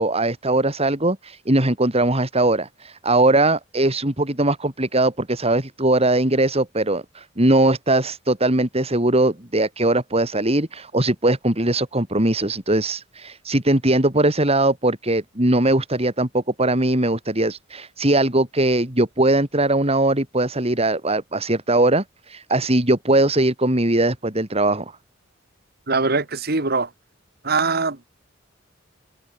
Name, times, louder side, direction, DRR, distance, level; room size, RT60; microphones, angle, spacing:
voice 1, 0.0-22.0 22.3-24.9, right 2 dB, 35° right, 3.9 m, -20 dB
voice 2, 25.9-26.9 27.4-28.0, right 4 dB, 55° right, 2.2 m, -22 dB
open air
head